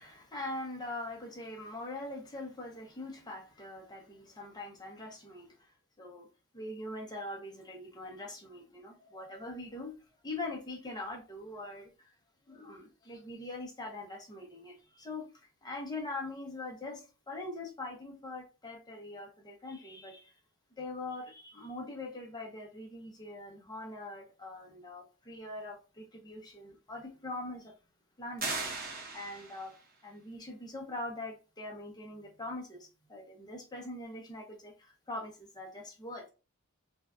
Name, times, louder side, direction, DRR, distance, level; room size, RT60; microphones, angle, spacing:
voice 1, 0.0-5.7 6.0-6.3 6.5-9.9 10.2-12.1 12.4-15.3 15.6-20.3 20.8-27.7 28.2-28.6 29.1-29.7 30.0-36.3, left 2 dB, 20° left, 0.6 m, -42 dB
sound 1, 28.4-29.8, right 3 dB, 45° right, 0.7 m, -37 dB
2.6 x 2.2 x 2.2 m
head